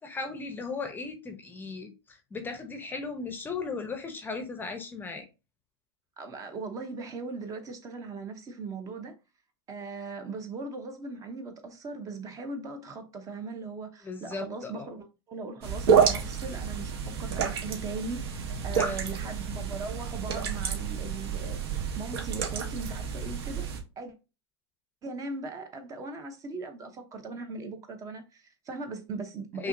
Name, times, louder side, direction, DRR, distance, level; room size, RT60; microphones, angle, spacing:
voice 1, 0.0-5.3 14.0-14.9 18.8-19.0 29.6-29.7, left 4 dB, 15° left, 0.7 m, -36 dB
voice 2, 6.2-9.1 9.7-23.7 24.0-24.1 25.0-29.7, right 3 dB, 25° right, 0.7 m, -39 dB
sound 1, 15.6-23.8, right 6 dB, 65° right, 1.2 m, -29 dB
5.5 x 2.8 x 2.6 m
hypercardioid pair, 130°, 14 cm